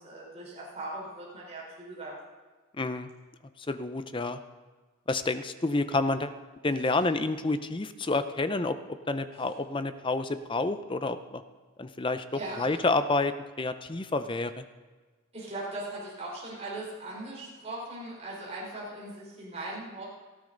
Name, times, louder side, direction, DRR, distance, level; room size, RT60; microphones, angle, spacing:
voice 1, 0.0-2.1 12.3-12.8 15.3-20.0, right 2 dB, 30° right, -5 dB, 4.1 m, -39 dB
voice 2, 2.8-3.1 3.6-4.4 5.1-6.3 6.6-8.8 9.1-11.4 11.8-12.2 12.6-14.6, left 2 dB, 25° left, 10 dB, 0.5 m, -29 dB
17.5 x 14.0 x 3.9 m, 1.4 s
head